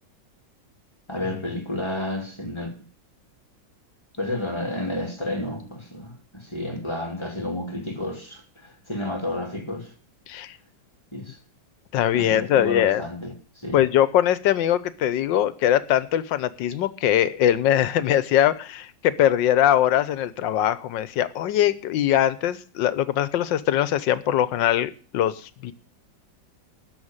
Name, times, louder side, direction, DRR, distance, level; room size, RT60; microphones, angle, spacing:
voice 1, 1.1-2.8 4.2-9.9 11.1-11.4 12.1-13.8, left 1 dB, 15° left, 2.5 m, -31 dB
voice 2, 10.3-10.6 11.9-13.0 13.7-25.7, left 11 dB, 80° left, 1.5 m, -22 dB
13.0 x 5.7 x 8.8 m
omnidirectional pair, 2.0 m